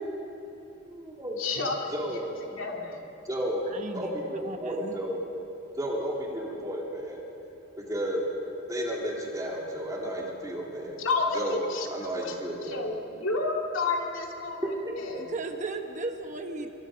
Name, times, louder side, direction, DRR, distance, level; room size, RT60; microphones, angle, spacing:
voice 1, 0.9-1.4 1.9-2.3 3.2-3.7 3.9-5.2 5.8-7.2 7.9-8.3 8.7-11.0 11.3-11.6 11.9-12.8 14.6-14.7, equal, 20° right, -3 dB, 3.6 m, -32 dB
voice 2, 1.4-2.0 2.6-3.0 11.0-11.9 12.2-12.4 12.6-14.7 15.0-15.3, left 3 dB, 85° left, 0 dB, 2.9 m, -30 dB
voice 3, 3.7-5.0 15.2-16.7, right 3 dB, 40° right, 5 dB, 1.2 m, -36 dB
25.5 x 23.0 x 5.2 m, 3.0 s
head